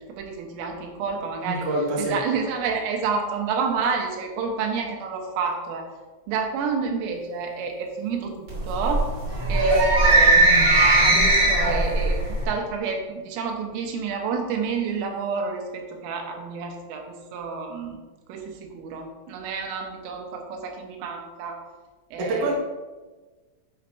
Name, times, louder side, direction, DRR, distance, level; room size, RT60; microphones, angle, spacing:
voice 1, 0.1-1.7 2.0-5.8 6.3-9.1 9.5-12.2 12.5-18.0 18.3-21.6 22.1-22.6, right 5 dB, 85° right, 2 dB, 3.7 m, -29 dB
voice 2, 1.4-2.2 22.2-22.6, right 2 dB, 70° right, -3 dB, 1.4 m, -26 dB
sound 1, 8.5-12.4, right 2 dB, 30° right, 2.2 m, -19 dB
9.9 x 7.3 x 2.7 m, 1.3 s
omnidirectional pair, 5.7 m